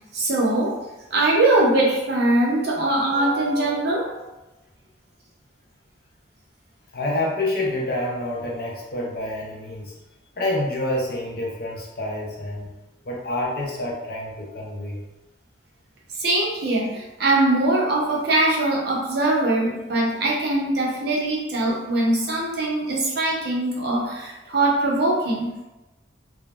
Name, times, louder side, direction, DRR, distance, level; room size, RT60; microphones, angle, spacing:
voice 1, 0.1-0.8 1.1-4.2 16.2-25.5, right 2 dB, 55° right, -3 dB, 0.6 m, -22 dB
voice 2, 6.9-9.9 10.4-12.7 13.1-15.0, left 1 dB, 50° left, -3 dB, 0.6 m, -28 dB
2.3 x 2.1 x 3.0 m, 1.0 s
head